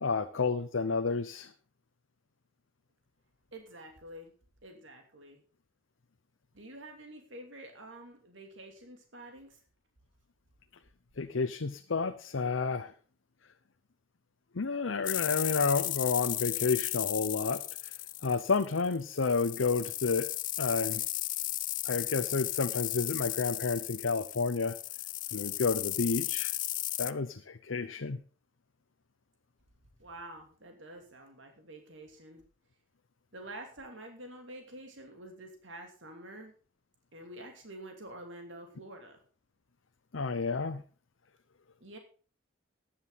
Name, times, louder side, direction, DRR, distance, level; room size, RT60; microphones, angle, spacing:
voice 1, 0.0-1.5 11.2-12.9 14.5-17.9 18.2-20.3 20.6-21.0 21.8-24.8 25.3-26.5 27.0-28.2 40.1-40.8, left 4 dB, 85° left, 7 dB, 0.8 m, -30 dB
voice 2, 3.5-4.3 4.6-5.4 6.5-9.6 30.0-32.4 33.3-36.5 37.1-39.2 41.8-42.0, right 1 dB, 80° right, 3 dB, 2.7 m, -48 dB
sound 1, 15.0-27.1, left 16 dB, 40° left, 0.5 m, -35 dB
15.0 x 10.5 x 4.0 m, 0.38 s
head